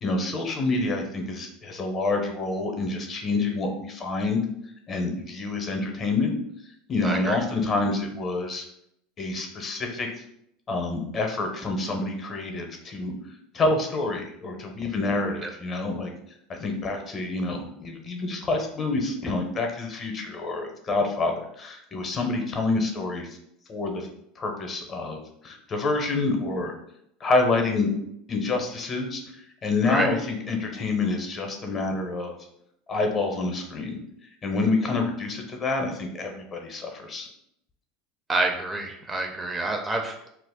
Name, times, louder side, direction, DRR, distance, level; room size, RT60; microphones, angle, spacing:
voice 1, 0.0-4.4 4.9-6.4 6.9-8.6 9.2-10.1 10.7-13.1 13.5-16.1 16.6-23.3 23.7-24.1 24.4-25.2 25.4-26.7 27.2-27.9 28.3-29.2 29.6-32.4 32.9-34.0 34.4-37.3, left 3 dB, 35° left, 3 dB, 0.6 m, -27 dB
voice 2, 7.0-7.4 15.4-15.5 29.9-30.1 38.3-40.3, right 2 dB, 20° right, 3 dB, 0.4 m, -27 dB
2.4 x 2.0 x 3.5 m, 0.75 s
hypercardioid pair, 85°, 0 cm